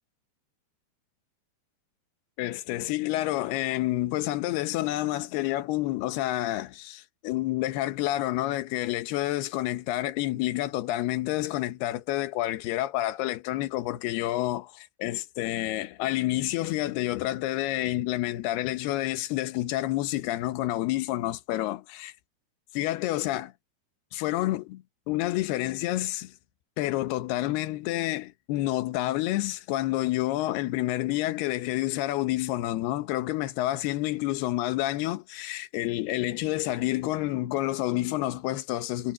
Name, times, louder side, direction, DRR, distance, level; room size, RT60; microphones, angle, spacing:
voice 1, 2.4-22.1 22.7-23.5 24.1-26.3 26.8-39.1, left 16 dB, 75° left, 3.0 m, -29 dB
omnidirectional pair, 4.7 m